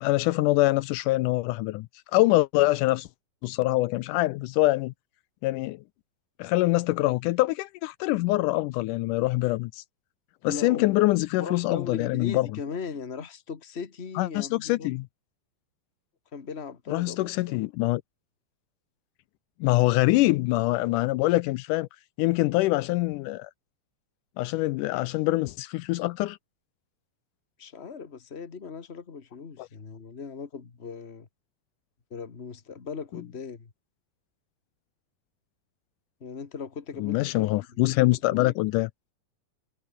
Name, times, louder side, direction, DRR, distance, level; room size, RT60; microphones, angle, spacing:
voice 1, 0.0-1.9 2.1-3.1 3.4-4.9 5.4-5.8 6.4-9.8 10.4-12.5 14.2-15.0 16.9-18.0 19.6-21.9 22.2-23.5 24.4-26.4 29.6-29.7 37.0-38.9, left 19 dB, 85° left, 1.9 m, -24 dB
voice 2, 10.5-11.0 11.4-14.9 16.3-17.6 27.6-31.3 32.1-33.7 36.2-38.5, left 5 dB, 65° left, 0.6 m, -38 dB
omnidirectional pair, 4.1 m